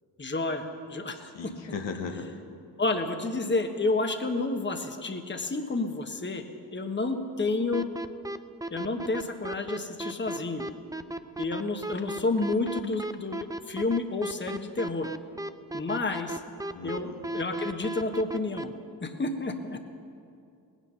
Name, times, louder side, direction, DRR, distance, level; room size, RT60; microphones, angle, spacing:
voice 1, 0.2-1.5 2.8-6.4 6.7-7.9 8.7-10.7 11.4-15.1 15.7-16.4 16.8-17.1 17.3-18.7 19.0-19.8, left 3 dB, 25° left, 6 dB, 1.2 m, -30 dB
voice 2, 1.3-2.3 16.7-17.3, left 5 dB, 75° left, 4 dB, 1.5 m, -37 dB
sound 1, 7.7-18.6, right 1 dB, 10° right, 0.6 m, -34 dB
18.5 x 9.2 x 5.6 m, 2.5 s
cardioid pair, 50°, 45 cm